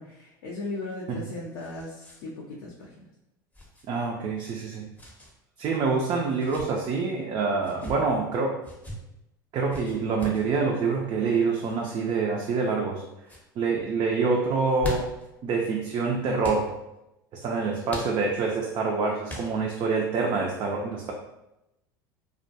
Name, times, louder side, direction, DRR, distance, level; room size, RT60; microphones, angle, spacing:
voice 1, 0.0-3.0, left 2 dB, 65° left, -3 dB, 0.5 m, -37 dB
sound 1, 0.9-2.2 2.5-2.6 3.5-3.8 4.9-5.3 6.2-6.7 7.6-8.0 8.6-9.0 9.7-10.5 11.6-12.0 12.6-13.0 13.2-13.5 14.5-15.3 16.4-16.7 17.9-18.5 19.3-19.8, left 1 dB, 15° left, 0.7 m, -40 dB
voice 2, 3.9-4.9 5.6-8.6 9.5-13.0 13.6-15.0 15.4-16.7 17.3-21.1, right 4 dB, 40° right, 0 dB, 0.4 m, -26 dB
2.2 x 2.1 x 2.7 m, 0.91 s
hypercardioid pair, 80°, 11 cm